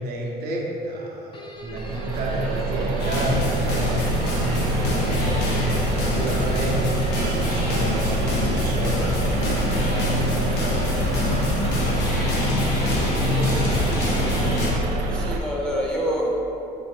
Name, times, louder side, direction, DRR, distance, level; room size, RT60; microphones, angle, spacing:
voice 1, 0.0-4.2 5.0-6.7 7.2-9.3 10.9-14.6, right 1 dB, 65° right, -2 dB, 0.8 m, -32 dB
sound 1, 1.3-14.5, left 3 dB, 30° left, 0.5 m, -37 dB
sound 2, 1.6-15.4, right 3 dB, 90° right, 0.4 m, -26 dB
sound 3, 3.0-14.7, left 2 dB, 85° left, 0.8 m, -25 dB
voice 2, 15.0-16.3, equal, 5° left, -5 dB, 0.8 m, -27 dB
4.2 x 2.6 x 4.9 m, 2.9 s
cardioid pair, 110°, 17 cm